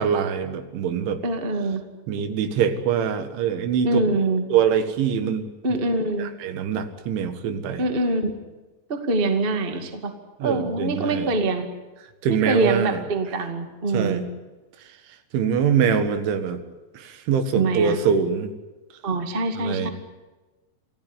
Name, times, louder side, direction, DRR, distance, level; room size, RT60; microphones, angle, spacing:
voice 1, 0.0-1.2 2.1-4.0 4.5-5.5 6.2-7.8 10.4-11.3 12.2-13.0 13.9-14.3 15.3-16.6 16.9-18.5 19.6-19.9, right 7 dB, 85° right, 9 dB, 4.2 m, -23 dB
voice 2, 1.2-1.8 3.8-4.4 5.6-6.3 7.8-8.3 8.9-10.1 10.4-11.7 12.3-14.2 17.5-18.0 19.0-19.9, right 2 dB, 40° right, 6 dB, 0.7 m, -24 dB
27.0 x 16.0 x 9.7 m, 1.2 s
omnidirectional pair, 5.3 m